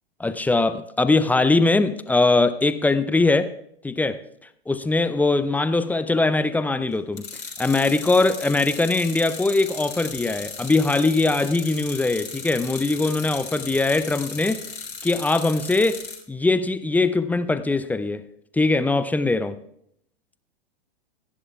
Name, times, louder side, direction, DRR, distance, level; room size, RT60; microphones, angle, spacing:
voice 1, 0.2-3.5 3.8-4.2 4.7-7.2 7.6-14.6 15.0-16.0 16.3-18.2 18.5-19.6, left 3 dB, 5° left, 12 dB, 0.5 m, -21 dB
sound 1, 7.2-16.2, left 4 dB, 85° left, 4.0 m, -36 dB
26.0 x 11.0 x 2.4 m, 0.70 s
figure-of-eight pair, 100°, 30 cm